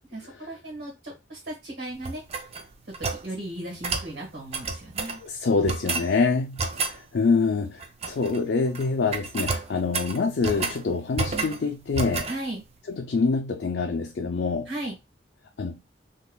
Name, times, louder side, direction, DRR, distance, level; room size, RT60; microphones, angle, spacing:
voice 1, 0.1-2.2 3.0-5.2 12.3-12.6 14.7-14.9, right 1 dB, 65° right, 1.6 m, -36 dB
sound 1, 2.0-3.3 3.8-4.1 4.5-5.2 5.7-6.1 6.6-7.0 7.8-8.4 8.7-8.9 9.1-10.8 11.2-11.6 11.9-12.4, right 4 dB, 35° right, 0.4 m, -30 dB
voice 2, 5.2-6.7 6.9-12.3 12.9-14.7 15.6-15.8, left 4 dB, 65° left, 0.4 m, -26 dB
3.8 x 2.8 x 2.3 m
head